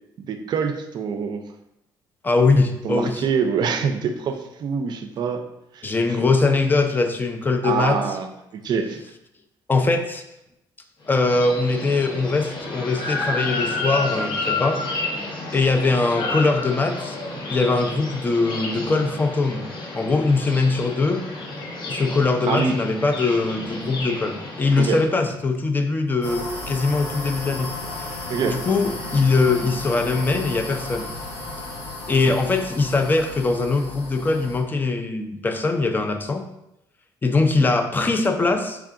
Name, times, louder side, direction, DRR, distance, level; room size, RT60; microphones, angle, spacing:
voice 1, 0.2-1.4 2.8-5.5 5.7-5.9 7.6-9.0 22.5-22.8 24.8-25.0 28.3-28.6, right 6 dB, 55° right, 7 dB, 0.4 m, -25 dB
voice 2, 2.2-3.2 5.8-8.0 9.7-10.2 11.1-14.8 15.5-17.2 17.5-19.7 19.9-21.2 21.9-27.7 28.0-28.1 28.5-31.1 32.1-36.4 37.2-38.8, left 3 dB, 20° left, 6 dB, 0.4 m, -21 dB
sound 1, 11.1-25.0, left 2 dB, 55° left, 0.8 m, -30 dB
sound 2, 26.2-34.6, left 2 dB, 80° left, 1.0 m, -34 dB
3.5 x 3.4 x 2.5 m, 0.86 s
cardioid pair, 100°, 9 cm